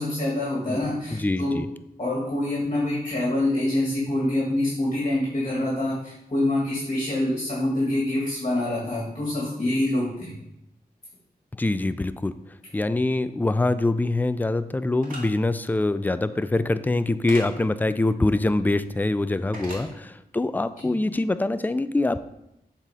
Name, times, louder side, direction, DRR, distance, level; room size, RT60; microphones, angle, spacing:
voice 1, 0.0-1.5 2.0-10.3 19.8-19.9, left 1 dB, 40° left, -5 dB, 2.1 m, -26 dB
voice 2, 1.1-1.7 11.6-12.3 12.7-22.2, left 2 dB, 10° left, 13 dB, 0.3 m, -24 dB
sound 1, 15.0-15.2 17.3-17.5 19.5-19.8, right 1 dB, 60° right, 2.0 m, -37 dB
7.1 x 4.1 x 3.7 m, 0.84 s
wide cardioid pair, 60°, 16 cm